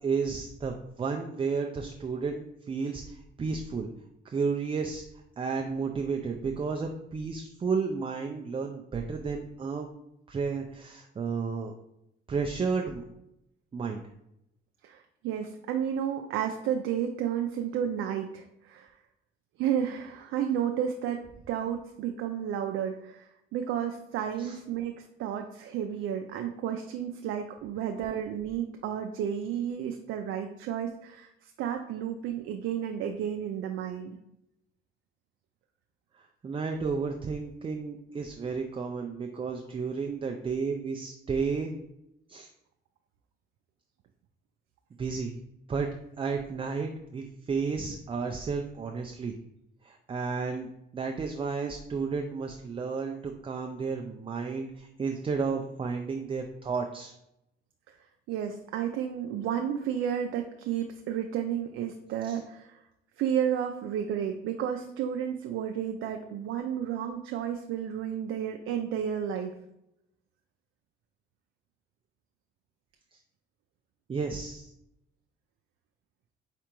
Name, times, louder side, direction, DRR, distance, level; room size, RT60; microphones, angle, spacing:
voice 1, 0.0-3.9 4.2-5.0 5.4-9.9 10.3-11.7 12.3-13.0 13.7-14.0 24.4-24.6 36.2-41.7 42.3-42.5 45.0-45.3 45.7-45.9 46.2-49.3 49.8-57.1 62.3-62.4 74.1-74.7, right 5 dB, 25° right, 3 dB, 0.4 m, -32 dB
voice 2, 14.8-18.9 19.6-21.2 21.5-34.2 58.3-62.8 63.2-69.5, right 9 dB, 90° right, 4 dB, 0.4 m, -32 dB
4.8 x 3.3 x 3.0 m, 0.81 s
cardioid pair, 90°, 20 cm